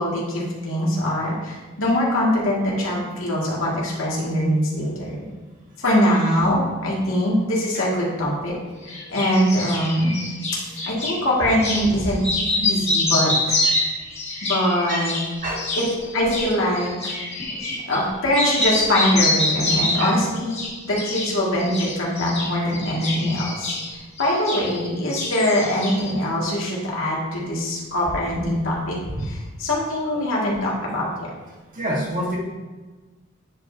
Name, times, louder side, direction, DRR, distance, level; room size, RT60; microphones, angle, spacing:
voice 1, 0.0-5.1 5.8-8.5 8.8-10.2 10.9-12.2 12.6-13.6 14.4-15.1 15.8-15.9 16.1-17.1 17.9-23.7 24.2-31.3, equal, 80° left, -5 dB, 2.1 m, -22 dB
sound 1, 8.9-11.2 11.6-11.9 12.2-18.1 18.3-20.2 20.5-21.3 21.6-24.9 25.1-26.1, left 2 dB, 35° left, 1.8 m, -26 dB
voice 2, 17.5-17.8 19.9-20.1 30.1-30.3 31.7-32.4, equal, 45° right, -3 dB, 1.6 m, -28 dB
9.6 x 5.1 x 2.8 m, 1.3 s
head